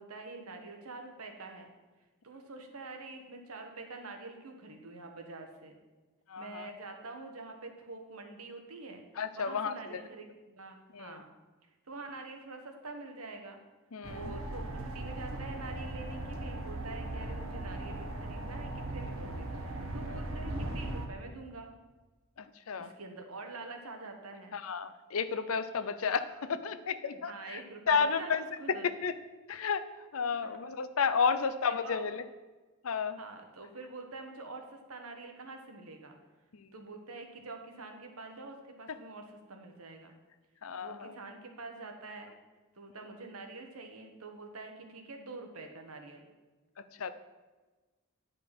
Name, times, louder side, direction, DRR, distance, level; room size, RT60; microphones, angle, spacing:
voice 1, 0.0-1.7 2.2-5.7 6.4-9.0 9.4-11.3 11.9-13.6 14.1-21.7 22.8-24.5 27.2-28.9 31.3-32.1 33.1-36.2 36.7-40.1 40.8-42.3 42.7-46.2, right 3 dB, 85° right, 4 dB, 1.4 m, -46 dB
voice 2, 6.3-6.7 9.2-10.0 10.9-11.2 13.9-14.3 20.1-20.2 22.7-22.9 24.5-27.6 27.9-28.4 28.8-29.1 29.5-29.8 30.1-32.2 32.8-33.2 40.6-41.1 47.0-47.1, left 6 dB, 75° left, 12 dB, 0.6 m, -32 dB
sound 1, 14.0-21.1, right 1 dB, 70° right, 1.1 m, -38 dB
10.5 x 5.3 x 6.0 m, 1.3 s
head